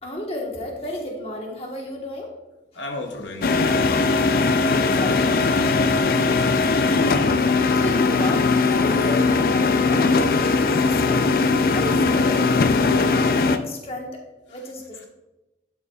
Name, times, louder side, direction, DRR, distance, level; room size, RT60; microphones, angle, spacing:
voice 1, 0.0-2.3 4.7-5.5 7.8-11.3 11.7-14.2 14.5-15.0, left 1 dB, 35° left, 0 dB, 1.3 m, -33 dB
voice 2, 2.7-4.3 4.9-5.2, left 2 dB, 85° left, 3 dB, 0.9 m, -35 dB
sound 1, 3.4-13.6, left 4 dB, 50° left, 0.4 m, -19 dB
11.5 x 5.7 x 2.3 m, 1.0 s
head